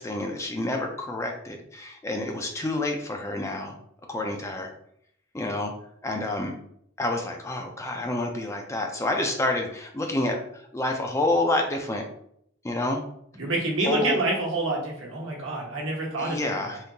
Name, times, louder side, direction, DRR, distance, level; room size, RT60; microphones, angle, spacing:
voice 1, 0.0-3.8 4.1-4.7 5.3-5.7 6.0-6.6 7.0-12.1 12.6-13.0 13.8-14.2 16.2-16.8, left 2 dB, 15° left, 2 dB, 0.3 m, -28 dB
voice 2, 13.4-16.8, right 2 dB, 65° right, -1 dB, 1.1 m, -27 dB
3.7 x 2.7 x 2.7 m, 0.69 s
head